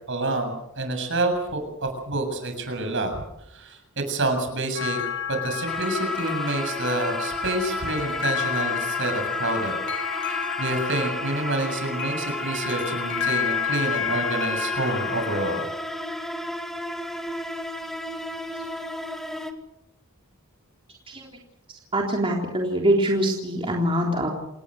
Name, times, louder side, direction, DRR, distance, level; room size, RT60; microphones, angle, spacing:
voice 1, 0.1-3.2 3.5-5.0 5.3-9.7 10.2-15.6, right 2 dB, 60° right, 6 dB, 7.5 m, -28 dB
sound 1, 4.7-15.6, left 8 dB, 55° left, 2.0 m, -30 dB
sound 2, 5.7-19.5, equal, ahead, 2.3 m, -33 dB
voice 2, 21.9-24.3, right 1 dB, 25° right, -1 dB, 3.7 m, -23 dB
28.5 x 20.0 x 6.7 m, 0.82 s
head